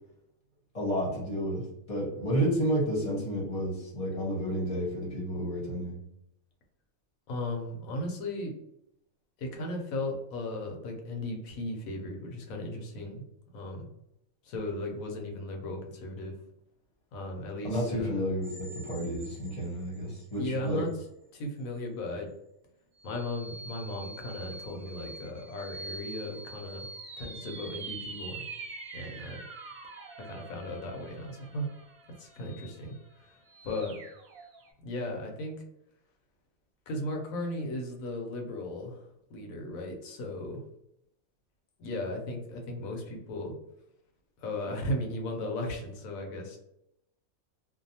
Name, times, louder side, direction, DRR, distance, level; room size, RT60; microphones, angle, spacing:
voice 1, 0.7-6.0 17.6-20.8, equal, 30° left, -5 dB, 0.9 m, -31 dB
voice 2, 7.3-8.5 9.4-13.2 13.5-13.9 14.4-16.3 17.1-18.2 20.4-20.9 21.3-22.3 23.0-26.9 27.2-28.4 28.9-29.5 30.2-31.7 32.2-34.0 34.8-35.5 36.9-40.6 41.8-43.6 44.4-46.6, left 1 dB, 80° left, 2 dB, 1.1 m, -36 dB
sound 1, 18.4-20.4 20.9-21.0 23.0-34.7, right 3 dB, 90° right, 1.2 m, -45 dB
2.6 x 2.2 x 2.7 m, 0.81 s
omnidirectional pair, 1.4 m